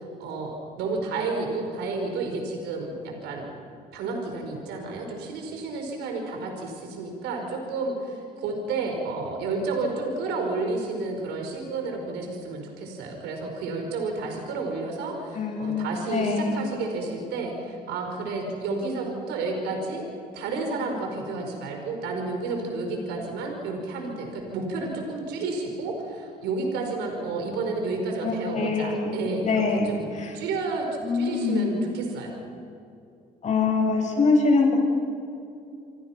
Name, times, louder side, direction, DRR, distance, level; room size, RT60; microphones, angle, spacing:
voice 1, 0.2-3.5 3.9-20.0 20.3-30.0 30.3-30.9 31.1-32.3, right 3 dB, 85° right, 2 dB, 4.8 m, -31 dB
voice 2, 15.3-16.7 28.2-30.3 31.0-31.9 33.4-34.7, left 3 dB, 45° left, 1 dB, 7.7 m, -24 dB
28.0 x 26.0 x 5.8 m, 2.6 s
cardioid pair, 110°, 17 cm